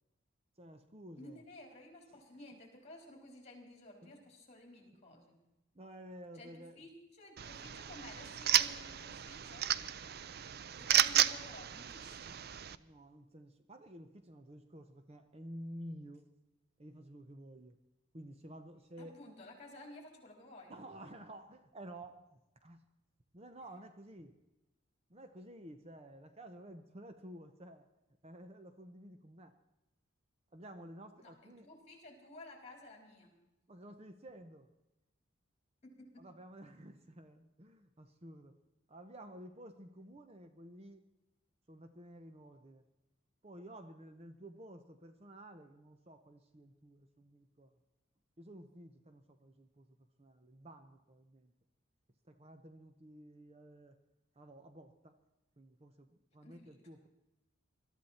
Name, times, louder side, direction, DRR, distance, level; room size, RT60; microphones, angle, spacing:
voice 1, 0.6-1.4 2.1-2.2 4.0-4.3 5.7-6.9 12.8-16.3 16.8-17.8 18.1-19.1 20.7-22.9 23.3-24.4 25.1-27.9 28.2-29.6 30.5-31.7 33.7-34.7 36.2-38.5 38.9-41.1 41.7-42.8 43.4-47.7 48.4-49.9 50.2-51.5 52.3-54.0 54.4-55.1 55.6-57.1, right 1 dB, 30° right, 8 dB, 0.8 m, -52 dB
voice 2, 1.2-5.4 6.3-9.7 10.8-12.4 19.0-20.8 31.2-33.3 35.8-36.2 56.4-56.8, left 1 dB, 30° left, 1 dB, 4.1 m, -54 dB
sound 1, 7.4-12.8, right 10 dB, 50° right, 0.5 m, -33 dB
21.5 x 13.0 x 4.3 m, 0.94 s
head